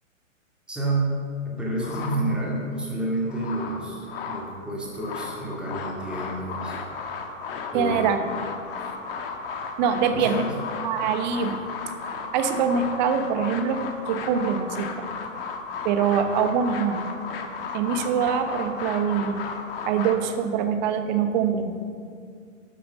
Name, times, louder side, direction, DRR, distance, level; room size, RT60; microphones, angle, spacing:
voice 1, 0.7-1.1 1.5-6.7 7.7-8.1 10.1-10.5, right 2 dB, ahead, -4 dB, 2.1 m, -29 dB
sound 1, 1.8-2.7 3.1-4.5 4.8-20.2, left 5 dB, 45° left, 1.3 m, -34 dB
voice 2, 7.7-8.2 9.8-10.4 10.8-11.6 12.3-14.9 15.8-17.0 17.7-19.4 19.8-21.7, right 7 dB, 35° right, 8 dB, 1.0 m, -24 dB
12.0 x 6.9 x 6.5 m, 2.2 s
hypercardioid pair, 125°, 40 cm